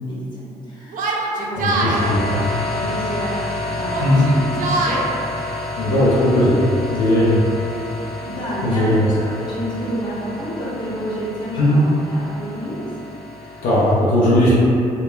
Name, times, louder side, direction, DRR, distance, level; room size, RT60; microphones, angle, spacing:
voice 1, 0.0-1.8 2.7-5.0 7.1-7.2 7.9-12.9 13.4-13.7, right 1 dB, 30° left, -8 dB, 1.0 m, -30 dB
Yell, 0.9-2.0 3.0-3.4 3.8-5.0, right 2 dB, 65° right, 0.4 m, -24 dB
sound 1, 1.8-13.9, left 2 dB, 5° right, 1.0 m, -30 dB
voice 2, 2.0-2.3 4.0-4.3 5.8-6.6 6.9-7.4 8.6-9.1 11.6-11.8 13.6-14.5, left 1 dB, 70° left, -9 dB, 0.5 m, -17 dB
2.9 x 2.2 x 2.2 m, 2.7 s
supercardioid pair, 65°, 15 cm